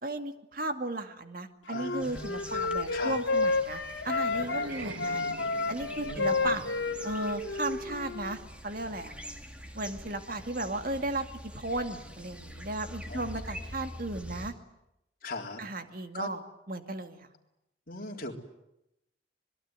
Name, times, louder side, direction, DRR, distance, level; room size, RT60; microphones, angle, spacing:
voice 1, 0.0-5.3 5.7-6.7 7.0-9.1 9.7-11.3 11.5-14.5 15.6-16.4 16.7-17.3, right 2 dB, 45° right, 7 dB, 2.2 m, -35 dB
voice 2, 1.7-2.7 2.9-3.2 6.0-6.6 13.1-13.7 15.2-15.6 16.1-16.3 17.9-18.3, left 2 dB, 45° left, 1 dB, 3.9 m, -40 dB
Wind instrument woodwind instrument, 1.8-4.7 5.0-8.3, left 3 dB, 75° left, 2.6 m, -31 dB
sound 1, 2.0-14.5, equal, 5° right, 2.5 m, -45 dB
sound 2, 4.0-8.6, right 1 dB, 75° right, 1.9 m, -46 dB
26.0 x 22.0 x 9.7 m, 0.85 s
head